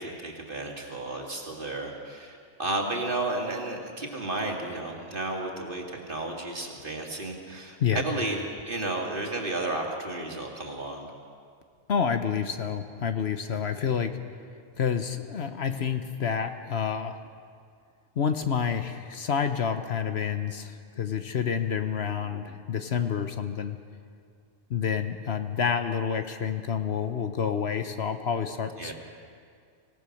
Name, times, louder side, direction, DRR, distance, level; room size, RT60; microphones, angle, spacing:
voice 1, 0.0-11.1 22.1-22.4 28.8-28.9, right 2 dB, 45° right, 1 dB, 2.6 m, -33 dB
voice 2, 11.9-14.2 14.8-17.2 18.2-23.8 24.7-28.9, left 7 dB, 60° left, 8 dB, 1.2 m, -28 dB
25.0 x 17.5 x 6.5 m, 2.2 s
omnidirectional pair, 1.3 m